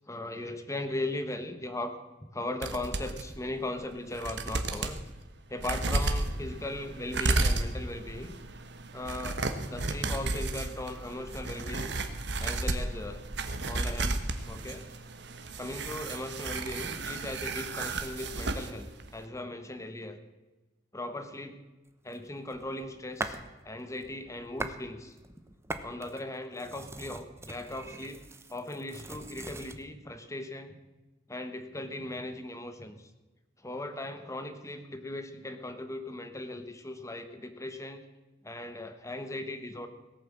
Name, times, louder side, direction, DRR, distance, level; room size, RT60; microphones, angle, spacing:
voice 1, 0.1-5.0 5.5-8.4 8.9-9.4 9.7-12.0 12.4-13.2 13.6-14.9 15.6-20.2 20.9-21.6 22.0-23.4 23.6-25.2 25.8-28.2 28.5-30.8 31.3-33.1 33.6-38.0 38.4-39.9, left 1 dB, 15° left, 8 dB, 1.3 m, -38 dB
sound 1, 2.6-3.3 3.8-3.9 4.1-5.0 5.6-18.7 19.0-19.1, right 2 dB, 65° right, 1.3 m, -33 dB
sound 2, 22.1-23.5 23.9-24.8 25.1-29.8, right 2 dB, 15° right, 0.9 m, -41 dB
17.5 x 9.1 x 7.5 m, 1.1 s
head